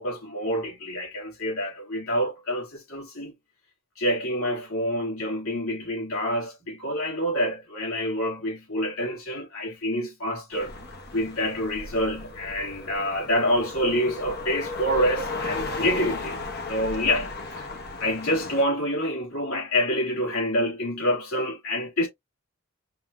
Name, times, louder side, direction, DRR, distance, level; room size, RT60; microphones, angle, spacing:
voice 1, 0.0-3.3 4.0-10.7 11.1-16.4 16.7-17.7 18.0-22.1, equal, 80° left, 3.1 m, -27 dB
sound 1, 10.5-18.6, left 3 dB, 50° left, 1.2 m, -35 dB
5.7 x 2.9 x 2.3 m
head